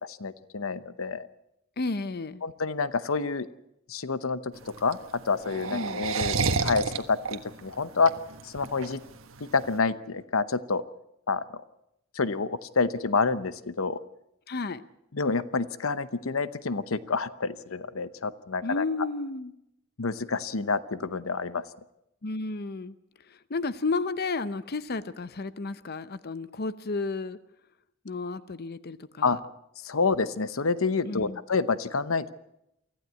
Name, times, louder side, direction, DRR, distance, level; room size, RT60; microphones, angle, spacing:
voice 1, 0.0-1.3 2.4-3.5 3.9-5.0 5.2-6.4 6.6-8.1 8.4-9.0 9.4-10.9 11.3-11.6 12.1-14.0 15.1-18.8 20.0-21.6 29.2-29.4 29.8-32.3, left 4 dB, 90° left, 15 dB, 0.9 m, -28 dB
voice 2, 1.8-2.4 5.7-6.0 14.5-14.8 18.6-19.5 22.2-23.0 23.3-27.4 28.0-29.4 31.1-31.4, left 3 dB, 50° left, 14 dB, 0.7 m, -32 dB
sound 1, 4.5-9.7, right 4 dB, 80° right, 1.5 m, -30 dB
24.5 x 15.0 x 8.2 m, 0.83 s
head